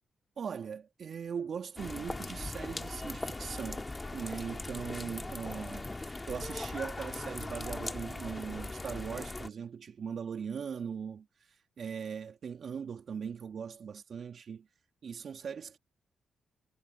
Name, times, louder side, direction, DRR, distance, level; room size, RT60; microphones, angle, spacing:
voice 1, 0.4-3.9 4.1-14.7 15.0-15.8, right 7 dB, 65° right, 2.0 m, -40 dB
sound 1, 1.8-9.5, left 2 dB, 30° left, 2.4 m, -39 dB
hypercardioid pair, 40°, 0 cm